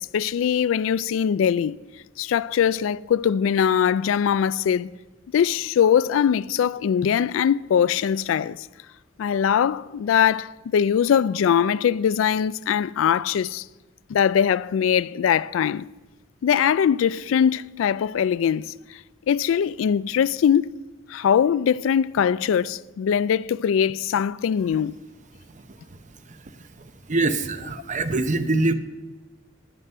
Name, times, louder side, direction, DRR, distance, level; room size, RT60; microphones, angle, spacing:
voice 1, 0.0-1.8 2.2-4.9 5.3-8.7 9.2-13.6 14.1-15.9 16.4-18.7 19.3-20.7 21.1-24.9, left 8 dB, 80° left, 0.3 m, -21 dB
voice 2, 26.8-28.7, right 2 dB, 40° right, 0.7 m, -24 dB
13.0 x 9.3 x 5.5 m
head